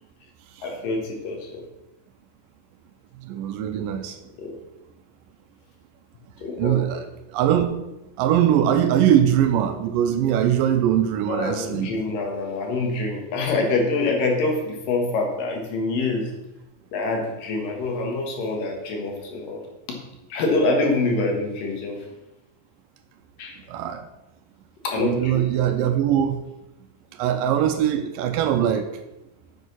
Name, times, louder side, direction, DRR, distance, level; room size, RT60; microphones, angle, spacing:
voice 1, 0.6-1.6 4.4-4.5 6.4-6.9 11.2-16.3 16.9-19.6 20.3-22.1 23.4-23.6 24.8-25.5, left 3 dB, 75° left, 2 dB, 3.1 m, -25 dB
voice 2, 3.2-4.2 6.6-7.7 8.2-11.9 23.7-24.0 25.0-26.4 27.2-28.9, right 10 dB, 85° right, 7 dB, 2.3 m, -21 dB
8.1 x 6.6 x 6.1 m, 0.95 s
omnidirectional pair, 4.0 m